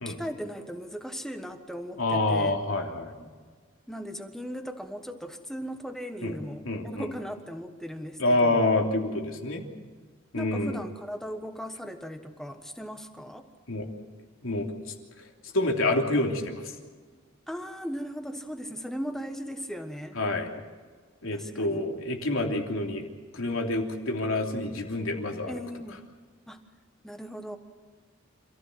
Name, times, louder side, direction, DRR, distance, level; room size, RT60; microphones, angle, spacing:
voice 1, 0.0-2.6 3.9-8.7 10.3-13.5 17.5-20.2 21.3-21.8 25.5-26.0 26.5-26.6 27.0-27.6, equal, ahead, 6 dB, 1.4 m, -38 dB
voice 2, 2.0-3.1 6.2-6.4 6.6-7.1 8.2-9.7 10.3-10.8 13.7-13.9 14.4-14.7 15.5-16.7 20.2-20.5 21.2-23.1 23.3-25.6, left 2 dB, 90° left, 2 dB, 3.2 m, -27 dB
27.5 x 15.0 x 8.0 m, 1.5 s
head